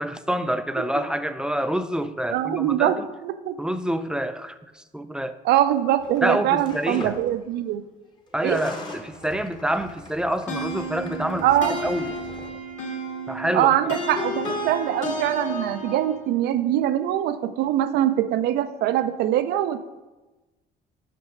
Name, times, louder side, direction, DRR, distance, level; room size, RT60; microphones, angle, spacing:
voice 1, 0.0-3.1 3.6-5.4 6.2-7.1 8.3-11.5 11.8-12.1 13.3-13.9, equal, 5° right, 0.3 m, -27 dB
voice 2, 2.3-3.6 5.4-7.8 8.4-8.7 11.4-11.8 13.5-19.9, right 12 dB, 75° right, 0.5 m, -23 dB
sound 1, 6.0-7.4 8.3-12.5, left 2 dB, 25° left, 1.2 m, -41 dB
sound 2, 10.5-16.3, equal, 45° left, 1.7 m, -32 dB
6.6 x 5.2 x 5.1 m
cardioid pair, 110°, 17 cm